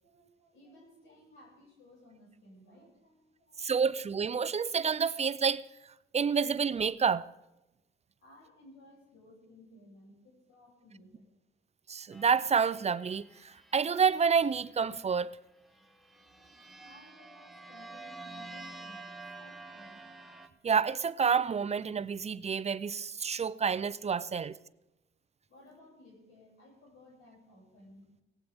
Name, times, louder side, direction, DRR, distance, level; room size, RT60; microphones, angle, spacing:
voice 1, 0.0-3.9 8.2-11.3 16.8-20.1 24.2-24.6 25.5-28.1, left 1 dB, 85° left, 7.0 m, -58 dB
voice 2, 3.6-5.6 6.1-7.2 11.9-15.3 20.6-24.5, right 6 dB, 35° right, 0.5 m, -29 dB
sound 1, 12.1-14.9 15.7-20.5, right 2 dB, ahead, 1.4 m, -49 dB
18.0 x 15.5 x 3.5 m
cardioid pair, 90°, 20 cm